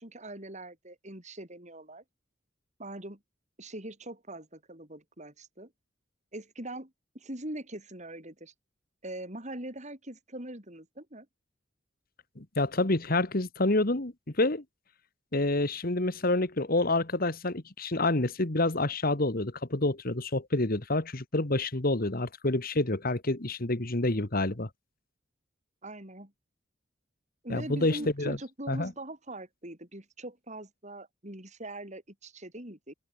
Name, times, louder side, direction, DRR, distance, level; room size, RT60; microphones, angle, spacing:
voice 1, 0.0-2.0 2.8-3.2 3.6-5.7 6.3-8.5 9.0-11.3 25.8-26.3 27.4-32.9, right 1 dB, 35° right, 6.3 m, -42 dB
voice 2, 12.4-14.6 15.3-24.7 27.5-28.4 28.7-28.9, left 2 dB, 50° left, 1.8 m, -28 dB
open air
head